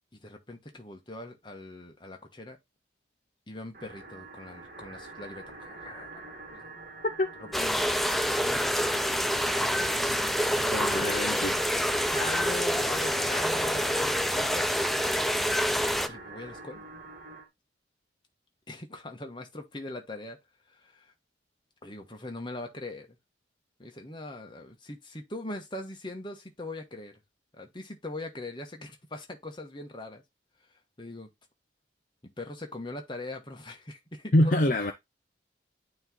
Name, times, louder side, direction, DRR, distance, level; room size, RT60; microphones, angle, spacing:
voice 1, 0.1-2.6 3.5-6.7 7.6-8.0 8.3-9.2 9.5-10.3 12.0-14.8 16.1-16.8 18.7-20.4 20.7-21.1 21.8-23.2 23.8-27.1 27.6-30.2 31.0-31.3 32.4-34.6, left 2 dB, 25° left, 1.2 m, -41 dB
sound 1, 3.7-17.5, right 3 dB, 45° right, 1.7 m, -45 dB
sound 2, 7.5-16.1, equal, ahead, 0.3 m, -27 dB
voice 2, 10.7-11.6 34.3-34.9, left 1 dB, 45° left, 0.6 m, -25 dB
8.9 x 3.1 x 3.8 m
head